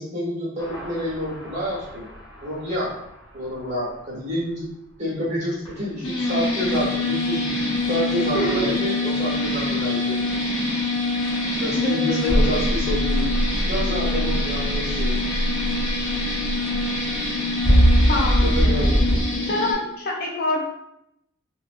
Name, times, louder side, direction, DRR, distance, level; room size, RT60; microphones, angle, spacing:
voice 1, 0.0-2.1 2.4-2.9 3.3-4.6 5.0-7.5 7.9-10.1 11.5-13.3 13.6-15.1 18.4-19.5, equal, 35° right, -7 dB, 1.2 m, -28 dB
sound 1, 0.6-3.1 5.7-5.8 12.3-19.2, equal, 20° left, 0.9 m, -23 dB
sound 2, 6.0-19.7, left 2 dB, 75° left, 0.8 m, -25 dB
voice 2, 8.3-8.7 11.7-12.6 18.1-18.6 19.4-20.7, left 1 dB, 45° left, -2 dB, 0.5 m, -25 dB
3.6 x 2.3 x 2.5 m, 0.82 s
head